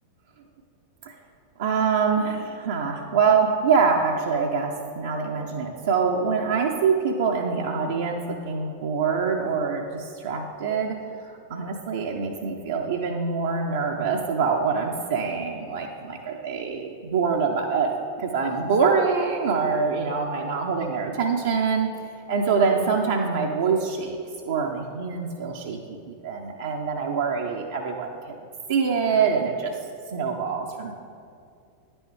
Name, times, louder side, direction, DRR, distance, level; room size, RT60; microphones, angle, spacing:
voice 1, 1.6-11.0 11.5-17.9 18.2-21.9 22.3-28.1 28.7-29.7 30.1-30.9, right 5 dB, 60° right, 1 dB, 0.5 m, -25 dB
9.9 x 6.2 x 3.2 m, 2.4 s
figure-of-eight pair, 90°, 0 cm